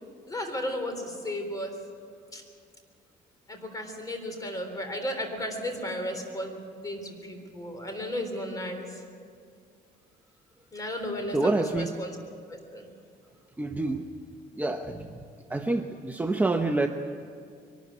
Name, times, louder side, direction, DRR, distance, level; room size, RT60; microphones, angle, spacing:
voice 1, 0.3-1.7 2.3-2.4 3.5-9.0 10.7-12.1 12.5-12.9, left 1 dB, 20° left, 5 dB, 3.8 m, -34 dB
voice 2, 11.3-11.9 13.6-14.0 14.6-15.2 15.5-16.9, right 2 dB, 10° right, 5 dB, 0.8 m, -27 dB
22.5 x 13.0 x 9.5 m, 2.2 s
cardioid pair, 110°, 17 cm